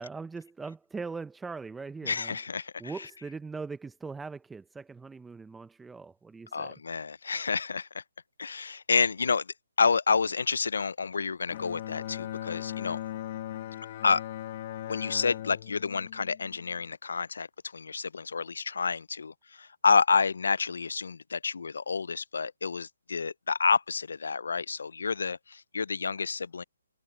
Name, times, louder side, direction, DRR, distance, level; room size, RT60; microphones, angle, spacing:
voice 1, 0.0-2.4 2.8-6.8, right 4 dB, 5° right, 0.6 m, -40 dB
voice 2, 2.1-2.7 6.5-8.0 8.4-9.5 9.8-13.0 14.0-14.2 14.9-17.5 17.7-26.6, left 5 dB, 75° left, 0.4 m, -29 dB
Bowed string instrument, 11.5-17.0, left 13 dB, 35° left, 1.7 m, -38 dB
hypercardioid pair, 155°, 0 cm